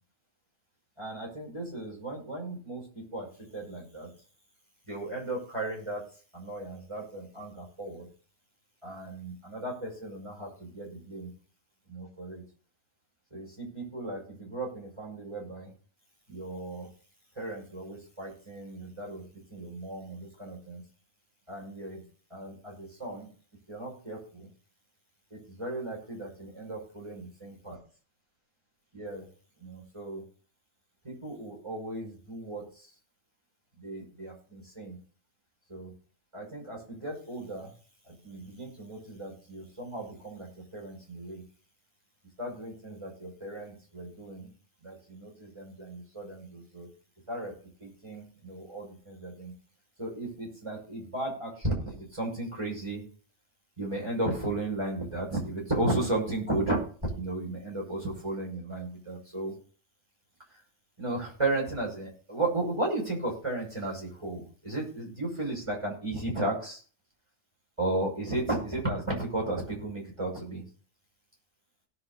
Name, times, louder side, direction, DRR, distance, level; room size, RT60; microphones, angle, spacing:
voice 1, 1.0-4.1 4.9-6.1 6.3-8.1 8.8-11.3 11.9-12.4 13.3-15.7 16.3-16.9 17.4-20.8 21.5-22.0 22.3-23.3 23.7-24.5 25.3-27.7 28.9-29.3 29.6-30.2 31.0-32.7 33.8-35.0 35.7-35.9 36.3-37.7 38.1-41.4 42.4-44.5 44.8-46.9 47.3-47.5 47.8-49.5 50.0-53.0 53.8-56.8 57.1-59.5 61.0-66.8 67.8-70.6, right 2 dB, 20° right, -1 dB, 5.9 m, -35 dB
17.0 x 7.4 x 4.1 m, 0.39 s
omnidirectional pair, 1.4 m